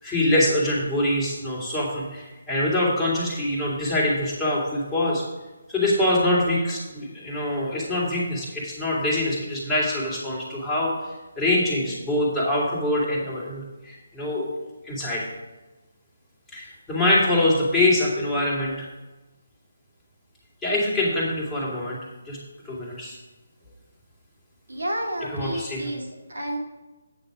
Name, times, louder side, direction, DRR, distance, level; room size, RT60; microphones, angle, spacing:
voice 1, 0.0-5.2 5.7-14.5 14.8-15.3 16.5-18.9 20.6-22.0 22.3-22.4 22.6-23.2 25.3-25.9, left 1 dB, 5° left, -6 dB, 2.4 m, -24 dB
voice 2, 24.7-26.6, right 1 dB, 75° right, -1 dB, 2.1 m, -30 dB
8.8 x 6.8 x 5.0 m, 1.1 s
figure-of-eight pair, 155°, 0 cm